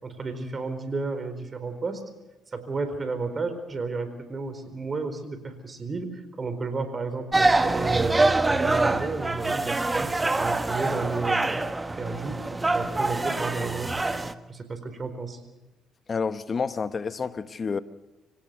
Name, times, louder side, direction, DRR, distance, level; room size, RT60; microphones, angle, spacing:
voice 1, 0.0-2.0 2.5-11.6 12.0-12.5 12.7-14.1 14.5-15.4, right 3 dB, 35° right, 4.4 m, -32 dB
sound 1, 7.3-14.3, right 2 dB, 20° right, 1.4 m, -25 dB
voice 2, 16.1-17.8, left 5 dB, 45° left, 1.2 m, -29 dB
25.0 x 17.5 x 6.8 m
hypercardioid pair, 50°, 0 cm